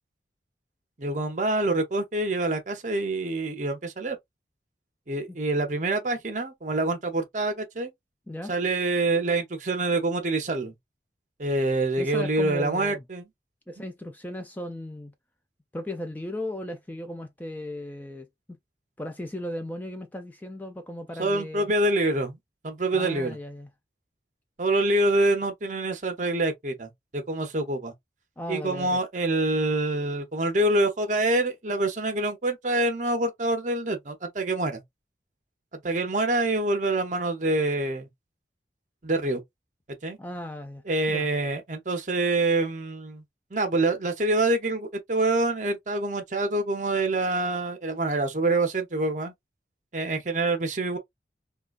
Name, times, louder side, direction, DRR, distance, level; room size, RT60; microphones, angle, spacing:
voice 1, 1.0-4.2 5.1-7.9 8.5-10.7 11.4-13.3 21.2-22.4 22.6-23.4 24.6-27.9 28.5-34.8 35.8-38.1 39.0-39.4 40.0-40.2 40.9-43.2 43.5-49.3 49.9-51.0, right 2 dB, 45° right, 0.8 m, -26 dB
voice 2, 12.0-13.0 13.7-15.1 15.7-18.3 19.0-21.7 22.9-23.7 28.4-29.0 40.2-41.3, left 1 dB, 10° left, 0.3 m, -36 dB
3.7 x 2.3 x 2.4 m
head